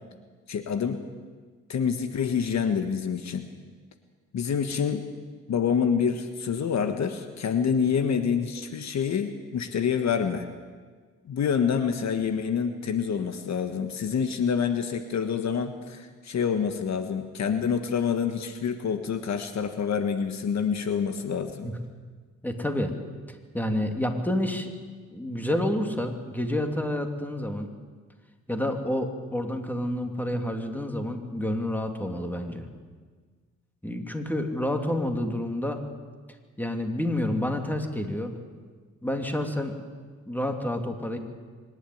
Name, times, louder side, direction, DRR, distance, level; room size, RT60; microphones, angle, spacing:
voice 1, 0.5-1.0 1.7-3.5 4.3-5.1 5.5-10.5 11.3-21.7, left 7 dB, 60° left, 7 dB, 1.5 m, -27 dB
voice 2, 22.4-22.9 23.3-24.7 25.1-27.7 28.5-32.7 33.8-35.8 36.6-38.3 39.0-39.7 40.3-41.2, left 1 dB, 5° left, 4 dB, 2.9 m, -29 dB
24.5 x 11.5 x 9.4 m, 1.5 s
supercardioid pair, 65°, 31 cm